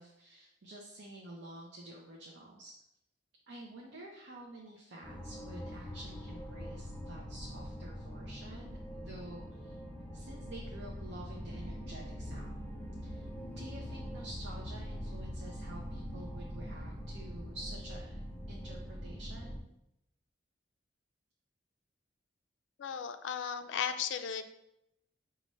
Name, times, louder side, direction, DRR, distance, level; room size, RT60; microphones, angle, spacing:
voice 1, 0.0-2.7 3.5-9.8 10.1-12.5 13.0-18.2 18.5-19.6, right 1 dB, 70° right, -2 dB, 0.6 m, -49 dB
sound 1, 5.0-19.6, equal, 10° left, 0.4 m, -43 dB
voice 2, 22.8-24.5, left 7 dB, 80° left, 10 dB, 0.3 m, -36 dB
5.2 x 2.5 x 3.1 m, 0.84 s
head